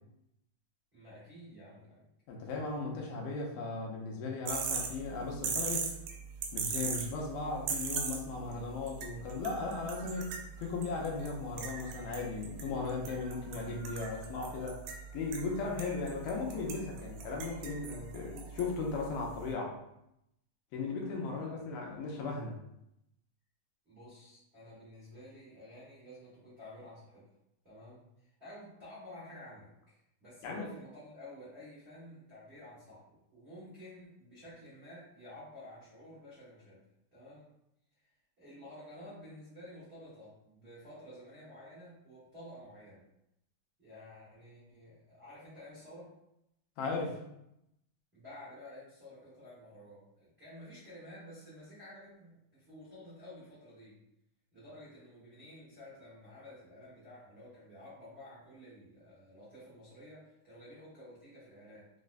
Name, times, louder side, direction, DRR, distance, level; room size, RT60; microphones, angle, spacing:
voice 1, 0.9-2.0 21.3-21.6 23.8-27.3 27.6-36.8 37.1-37.5 38.4-43.0 43.8-46.1 48.1-54.0 54.5-61.9, left 1 dB, 55° right, -9 dB, 0.7 m, -52 dB
voice 2, 2.3-5.9 6.5-10.3 10.6-14.8 15.1-19.8 20.7-22.6 30.4-30.7 46.8-47.2, left 3 dB, 85° left, -1 dB, 2.3 m, -37 dB
sound 1, 4.5-19.5, right 6 dB, 80° right, 2.1 m, -41 dB
5.3 x 2.1 x 2.5 m, 0.81 s
omnidirectional pair, 3.9 m